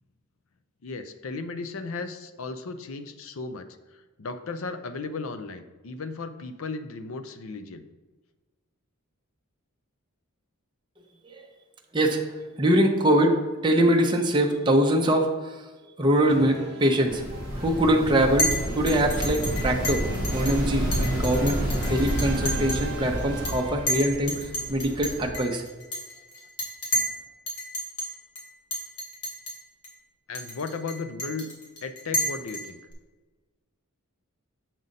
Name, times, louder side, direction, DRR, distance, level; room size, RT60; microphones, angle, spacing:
voice 1, 0.8-3.7 3.9-7.8 30.3-31.5 31.8-32.8, left 4 dB, 65° left, 10 dB, 0.5 m, -35 dB
voice 2, 12.6-13.4 13.6-15.6 16.0-17.2 17.5-20.0 20.3-21.6 21.9-25.6, right 1 dB, 20° right, 1 dB, 0.7 m, -23 dB
sound 1, 16.3-24.2, right 2 dB, 50° right, 1.1 m, -39 dB
sound 2, 17.1-25.3, equal, 40° left, 0.9 m, -30 dB
Chink clink, 18.4-18.6 18.9-20.5 20.9-22.9 23.2-23.5 23.9-27.2 27.5-28.1 28.3-28.4 28.7-29.5 29.8-29.9 30.3-32.9, equal, 80° left, 2.0 m, -30 dB
7.5 x 4.1 x 5.2 m, 1.2 s
head